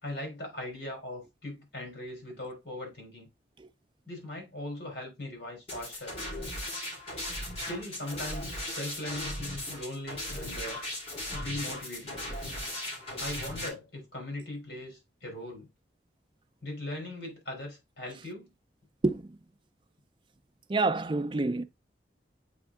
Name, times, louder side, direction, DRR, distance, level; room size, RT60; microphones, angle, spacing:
voice 1, 0.0-3.3 4.0-6.1 7.6-10.8 11.3-12.2 13.2-15.7 16.6-18.5, left 1 dB, 60° left, 3.3 m, -39 dB
sound 1, 5.7-13.7, left 1 dB, 35° left, 2.5 m, -37 dB
voice 2, 19.0-19.4 20.7-21.6, right 3 dB, 25° right, 0.4 m, -28 dB
7.9 x 3.5 x 3.6 m
head